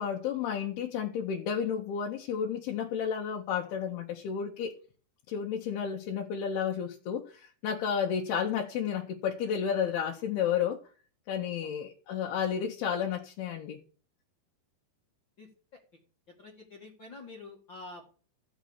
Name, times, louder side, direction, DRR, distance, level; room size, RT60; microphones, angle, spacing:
voice 1, 0.0-4.8 5.3-10.8 11.3-13.8, left 7 dB, 75° left, 3.0 m, -32 dB
voice 2, 16.4-18.1, left 3 dB, 45° left, 1.7 m, -47 dB
14.5 x 6.4 x 7.0 m
omnidirectional pair, 4.7 m